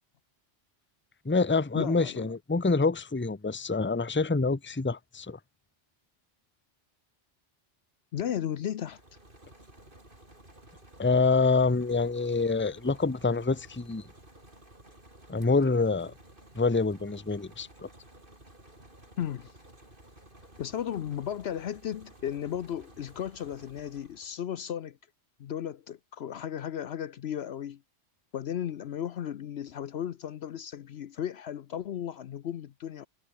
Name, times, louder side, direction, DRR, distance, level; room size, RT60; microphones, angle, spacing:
voice 1, 1.2-5.4 11.0-14.0 15.3-16.1 16.5-17.7, left 4 dB, 10° left, 0.8 m, -26 dB
voice 2, 1.7-2.3 8.1-9.0 19.2-19.5 20.6-25.0 25.4-27.8 28.3-33.1, left 10 dB, 65° left, 0.9 m, -35 dB
sound 1, 8.6-24.4, right 1 dB, 45° right, 6.2 m, -54 dB
omnidirectional pair, 1.2 m